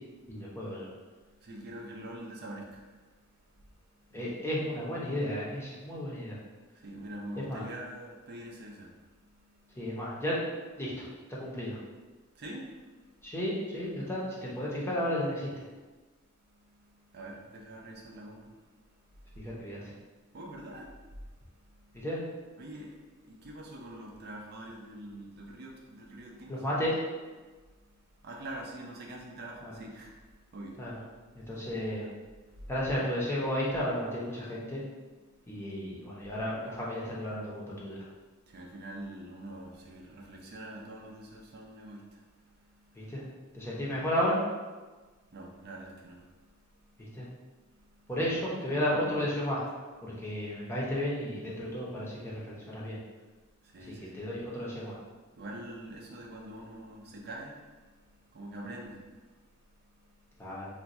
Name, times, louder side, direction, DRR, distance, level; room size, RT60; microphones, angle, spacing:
voice 1, 0.3-0.9 4.1-6.4 7.4-7.6 9.8-10.4 10.8-11.1 11.4-11.8 13.2-15.5 19.4-19.9 22.0-22.2 26.5-26.9 29.6-29.7 30.8-31.0 31.3-32.1 32.7-34.8 35.5-38.0 43.0-43.2 43.5-44.4 47.0-47.2 48.1-49.6 50.0-53.0 54.1-55.0 60.4-60.7, equal, 10° left, -6 dB, 0.7 m, -33 dB
voice 2, 1.3-4.2 6.7-9.9 12.4-13.3 16.5-19.5 20.2-22.1 22.6-26.7 27.4-31.8 32.4-32.7 35.2-35.5 38.5-43.1 43.6-43.7 45.2-47.2 47.7-48.1 49.0-49.2 53.6-54.2 55.3-60.6, right 1 dB, 50° right, -1 dB, 0.5 m, -46 dB
2.5 x 2.2 x 4.0 m, 1.3 s
head